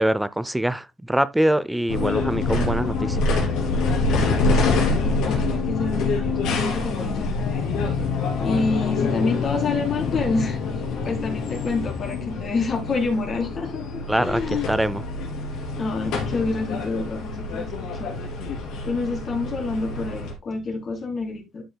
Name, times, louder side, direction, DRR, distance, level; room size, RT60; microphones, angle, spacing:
voice 1, 0.0-3.2 14.1-14.4 14.7-15.0, right 1 dB, 5° right, 0.4 m, -23 dB
sound 1, 1.9-20.3, left 3 dB, 85° left, 3.1 m, -26 dB
voice 2, 4.1-8.0 8.4-10.6 11.0-14.7 15.8-18.3 18.8-21.6, left 3 dB, 45° left, 3.6 m, -28 dB
12.5 x 6.4 x 2.2 m
cardioid pair, 120°, 0 cm